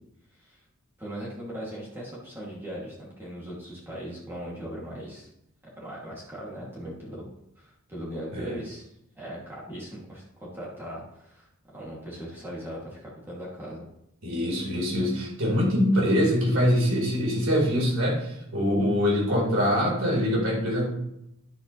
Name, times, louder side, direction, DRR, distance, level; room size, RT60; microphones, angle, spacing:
voice 1, 1.0-5.3 5.8-7.2 7.6-8.9 9.1-13.9, equal, 10° right, -7 dB, 2.6 m, -39 dB
voice 2, 14.2-20.9, equal, 90° right, -3 dB, 4.2 m, -24 dB
10.5 x 8.3 x 3.3 m, 0.79 s
head